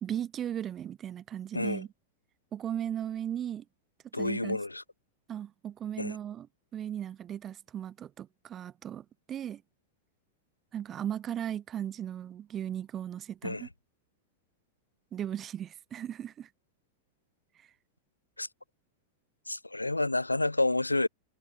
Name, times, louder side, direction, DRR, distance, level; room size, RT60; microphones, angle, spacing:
voice 1, 0.0-1.9 2.5-3.6 4.2-4.6 5.3-6.5 6.7-9.6 10.7-13.7 15.1-16.5, right 10 dB, 25° right, 1.7 m, -37 dB
voice 2, 4.1-4.8 6.0-6.2 13.4-13.7 18.4-18.5 19.5-21.1, left 2 dB, 85° left, 3.2 m, -29 dB
figure-of-eight pair, 90°, 0 cm